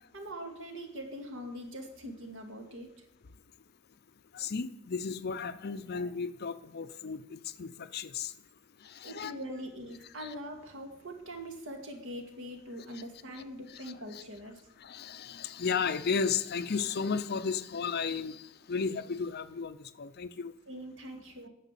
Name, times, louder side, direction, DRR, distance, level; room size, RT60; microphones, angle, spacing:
voice 1, 0.1-2.9 9.0-14.6 20.7-21.5, equal, 65° right, 3 dB, 2.1 m, -42 dB
voice 2, 4.3-8.3 8.8-9.3 10.2-10.3 12.9-13.0 13.3-13.4 13.7-14.2 14.8-20.5, left 5 dB, 50° left, 13 dB, 0.6 m, -34 dB
9.8 x 6.5 x 8.3 m, 0.84 s
head